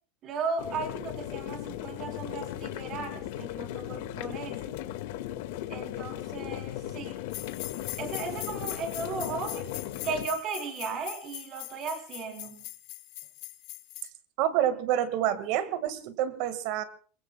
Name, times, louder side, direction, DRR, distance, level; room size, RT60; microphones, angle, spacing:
voice 1, 0.2-4.8 5.7-7.2 8.0-9.7 10.0-12.6, right 4 dB, 35° right, 4 dB, 4.0 m, -36 dB
sound 1, 0.6-10.3, left 13 dB, 65° left, 1.9 m, -37 dB
sound 2, 7.3-14.1, left 19 dB, 50° left, 1.6 m, -41 dB
voice 2, 14.4-16.8, right 11 dB, 55° right, 11 dB, 1.9 m, -28 dB
27.0 x 22.5 x 2.3 m, 0.41 s
supercardioid pair, 160°, 0 cm